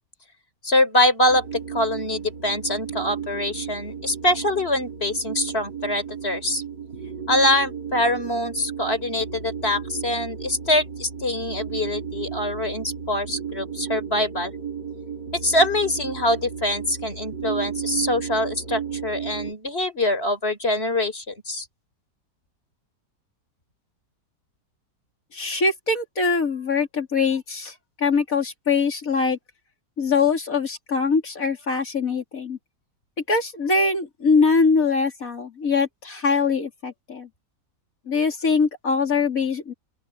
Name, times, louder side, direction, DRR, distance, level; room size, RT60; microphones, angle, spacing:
voice 1, 0.6-6.6 7.3-14.5 15.4-21.7, left 1 dB, 35° left, 4.4 m, -24 dB
sound 1, 1.3-19.5, right 7 dB, 75° right, 4.9 m, -34 dB
voice 2, 25.3-29.4 30.0-32.6 33.3-37.3 38.1-39.7, left 4 dB, 50° left, 3.8 m, -22 dB
open air
omnidirectional pair, 1.8 m